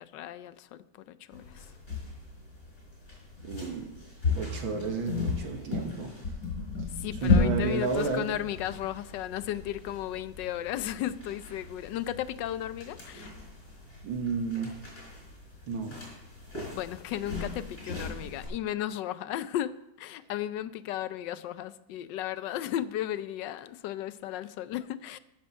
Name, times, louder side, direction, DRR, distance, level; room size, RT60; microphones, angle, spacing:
voice 1, 0.0-1.7 7.0-13.3 16.7-25.2, left 12 dB, 75° left, 1.1 m, -35 dB
sound 1, 1.3-18.5, left 4 dB, 40° left, 5.2 m, -35 dB
voice 2, 3.4-3.9 4.4-6.1 6.8-6.9 7.2-8.3 14.0-14.7 15.7-16.0, right 4 dB, 75° right, 2.0 m, -32 dB
14.5 x 7.1 x 6.3 m
omnidirectional pair, 2.2 m